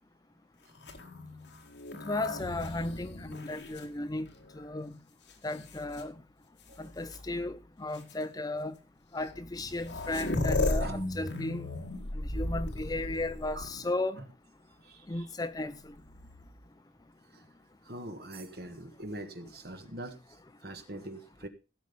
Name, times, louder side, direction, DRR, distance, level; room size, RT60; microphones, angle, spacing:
sound 1, 0.8-4.6 5.3-6.0 7.1-7.2 7.9-8.1 9.3-9.4 9.5-14.0 15.9-16.6, left 2 dB, 65° left, 1.9 m, -36 dB
voice 1, 2.0-4.3 4.5-4.9 5.4-6.1 6.8-8.7 9.1-11.7 12.1-14.2 15.1-15.9, left 2 dB, 20° left, 0.5 m, -35 dB
voice 2, 14.8-15.3 17.3-17.4 17.8-21.5, right 1 dB, 50° right, 1.5 m, -43 dB
16.0 x 6.4 x 5.2 m
head